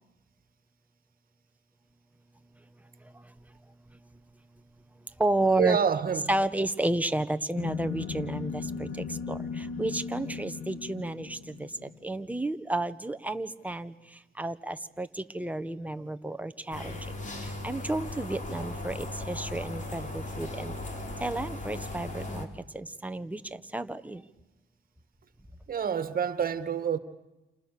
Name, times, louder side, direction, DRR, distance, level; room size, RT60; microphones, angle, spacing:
voice 1, 3.0-3.3 5.2-5.8 6.3-20.8 21.2-22.5 22.7-24.2, right 2 dB, 5° right, 1.5 m, -32 dB
voice 2, 5.4-6.3 25.7-27.0, right 7 dB, 45° right, 2.1 m, -28 dB
sound 1, 7.6-12.1, left 6 dB, 90° left, 2.0 m, -37 dB
sound 2, 16.7-22.5, left 2 dB, 40° left, 4.4 m, -37 dB
29.5 x 28.5 x 6.9 m
cardioid pair, 90°, 20 cm